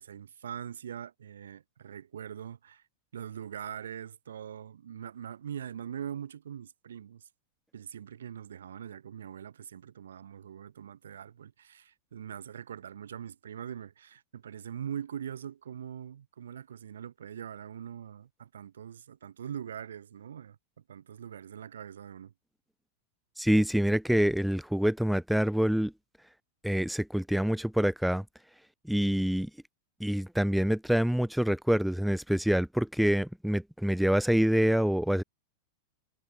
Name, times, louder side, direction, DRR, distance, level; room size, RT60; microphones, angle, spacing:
voice 1, 0.0-2.8 3.1-7.3 7.7-20.6 20.9-22.3, right 9 dB, 65° right, 3.8 m, -42 dB
voice 2, 23.4-25.9 26.6-28.2 28.8-29.5 30.0-35.2, equal, ahead, 1.2 m, -26 dB
figure-of-eight pair, 90°, 0 cm